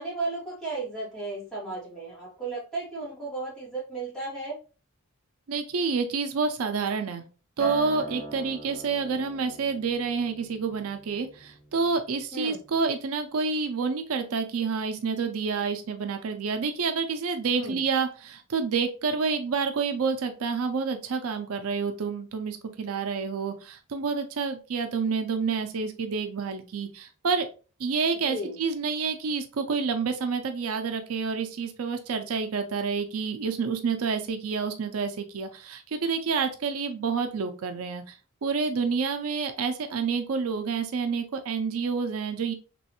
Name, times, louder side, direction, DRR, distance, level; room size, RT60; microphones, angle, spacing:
voice 1, 0.0-4.5 12.3-12.6 17.5-17.8 28.2-28.6, right 2 dB, ahead, -8 dB, 1.7 m, -34 dB
voice 2, 5.5-7.2 7.6-27.5 27.8-42.5, right 5 dB, 85° right, 7 dB, 0.5 m, -28 dB
Acoustic guitar, 7.6-12.0 12.4-12.8, right 2 dB, 45° right, 1.0 m, -41 dB
3.1 x 3.0 x 2.9 m, 0.34 s
head